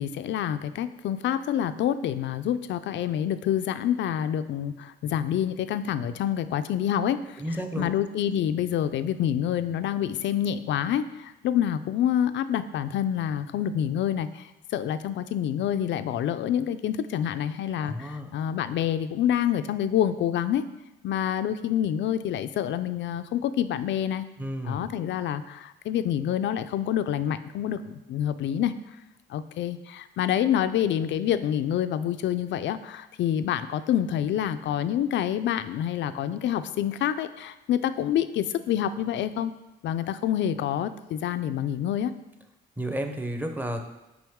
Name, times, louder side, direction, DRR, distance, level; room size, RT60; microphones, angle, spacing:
voice 1, 0.0-7.4 7.8-20.6 21.0-24.3 24.6-28.7 29.3-39.5 39.8-42.1, left 10 dB, 65° left, 12 dB, 0.4 m, -27 dB
voice 2, 7.4-7.9 17.8-18.3 24.4-24.9 42.8-43.8, equal, 10° right, 5 dB, 0.7 m, -32 dB
6.1 x 5.1 x 3.6 m, 0.98 s
cardioid pair, 90°, 20 cm